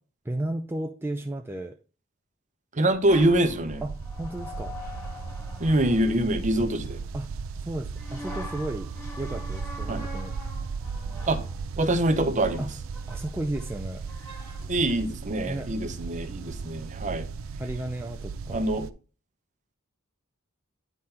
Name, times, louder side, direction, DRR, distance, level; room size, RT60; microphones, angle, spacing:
voice 1, 0.2-1.8 3.8-4.8 7.1-7.3 7.6-8.9 9.2-10.3 12.6-12.7 13.1-14.0 15.5-15.7 17.6-18.6, right 1 dB, 10° right, 0.5 m, -33 dB
voice 2, 2.7-3.8 5.6-7.0 9.9-10.0 11.3-11.4 11.8-12.6 14.7-17.3 18.5-18.9, right 1 dB, 35° right, 0.8 m, -24 dB
sound 1, 2.9-18.9, right 4 dB, 70° right, 0.5 m, -36 dB
sound 2, 3.1-7.0 7.9-15.1, left 1 dB, 10° left, 2.2 m, -44 dB
9.2 x 3.8 x 4.2 m
head